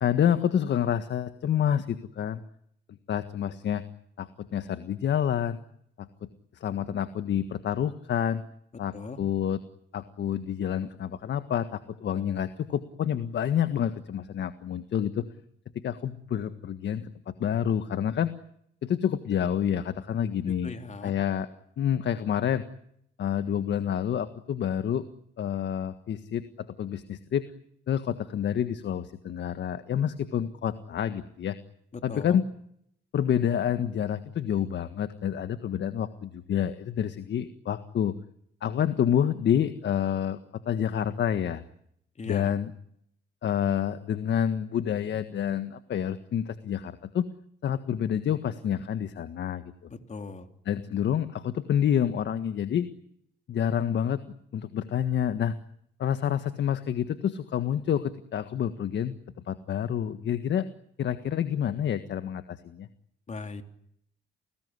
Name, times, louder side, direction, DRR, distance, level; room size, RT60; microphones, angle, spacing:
voice 1, 0.0-2.4 3.1-3.8 4.2-5.6 6.0-6.3 6.5-8.4 8.8-9.6 9.9-15.3 15.8-18.3 18.8-20.7 21.0-21.5 21.8-22.6 23.2-25.1 25.4-27.5 27.9-31.6 32.0-32.4 33.1-38.1 38.6-40.4 40.6-41.6 42.3-42.7 43.4-47.3 47.6-49.6 50.6-52.9 53.5-54.2 54.5-55.5 56.0-59.2 59.5-60.7 61.0-62.9, left 9 dB, 65° left, 10 dB, 1.6 m, -28 dB
voice 2, 20.4-21.1 31.9-32.4 42.2-42.5 49.9-50.5 63.3-63.6, left 4 dB, 35° left, 6 dB, 3.6 m, -39 dB
29.5 x 20.0 x 9.8 m, 0.73 s
cardioid pair, 90°, 20 cm